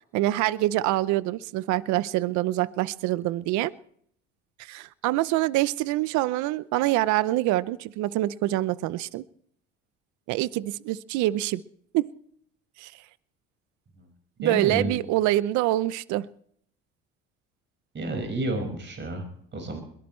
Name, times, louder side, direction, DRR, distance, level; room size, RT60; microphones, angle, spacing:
voice 1, 0.1-3.7 4.6-9.2 10.3-11.6 11.9-12.1 12.8-12.9 14.4-16.3, right 16 dB, 75° right, 18 dB, 0.7 m, -25 dB
voice 2, 14.4-14.9 17.9-19.2 19.5-19.8, right 1 dB, 35° right, 4 dB, 5.4 m, -30 dB
22.0 x 17.5 x 3.2 m, 0.66 s
supercardioid pair, 75°, 30 cm